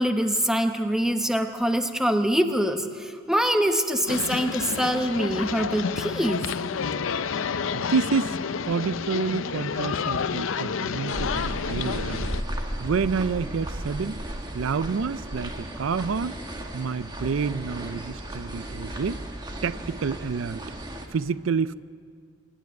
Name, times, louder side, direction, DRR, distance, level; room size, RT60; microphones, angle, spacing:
voice 1, 0.0-6.5, equal, 5° right, 7 dB, 0.9 m, -24 dB
sound 1, 4.1-12.4, left 6 dB, 75° left, 0.5 m, -30 dB
voice 2, 7.7-12.3 12.8-14.2 14.5-16.4 16.7-19.2 19.6-20.7 21.1-21.7, right 5 dB, 75° right, 16 dB, 0.4 m, -28 dB
sound 2, 11.1-21.1, right 1 dB, 20° right, 1.5 m, -35 dB
25.5 x 12.0 x 9.4 m, 2.1 s
head